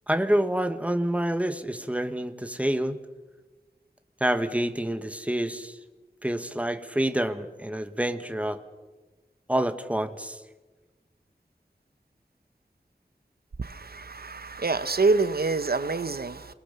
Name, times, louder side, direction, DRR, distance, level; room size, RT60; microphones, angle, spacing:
voice 1, 0.1-3.0 4.2-5.8 6.2-8.6 9.5-10.4, right 1 dB, 10° right, 1.6 m, -27 dB
voice 2, 13.6-16.5, right 3 dB, 70° right, 1.0 m, -26 dB
27.5 x 20.5 x 7.0 m
wide cardioid pair, 60°, 17 cm